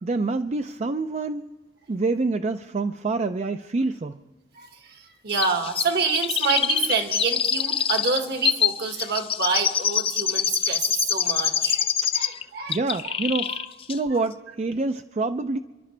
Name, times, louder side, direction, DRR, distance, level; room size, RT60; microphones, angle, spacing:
voice 1, 0.0-1.5 1.9-4.2 12.7-13.5 13.9-15.6, right 3 dB, 35° right, 9 dB, 0.4 m, -26 dB
voice 2, 4.6-11.9 12.1-12.8 13.1-13.2 13.5-13.7, right 5 dB, 60° right, 5 dB, 1.7 m, -27 dB
Chirp tweet, 5.4-12.4 12.7-13.6 13.9-14.0, left 8 dB, 30° left, 0.5 m, -25 dB
30.0 x 11.5 x 3.3 m, 1.2 s
head